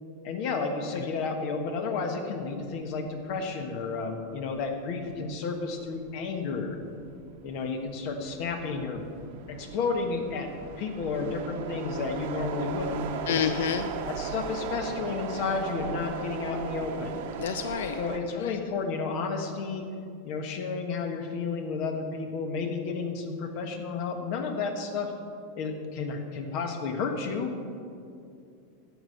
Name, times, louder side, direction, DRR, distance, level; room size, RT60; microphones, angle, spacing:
voice 1, 0.2-6.8 7.4-9.1 9.5-10.5 10.8-13.5 14.0-17.3 18.0-19.9 20.2-25.1 25.6-27.5, left 4 dB, 45° left, 5 dB, 1.4 m, -32 dB
sound 1, 3.2-3.4 3.8-18.2, right 6 dB, 60° right, 0.9 m, -38 dB
voice 2, 13.3-13.9 17.4-18.0 18.4-18.5, left 8 dB, 85° left, 10 dB, 0.4 m, -28 dB
10.0 x 8.3 x 6.5 m, 2.5 s
supercardioid pair, 160°, 0 cm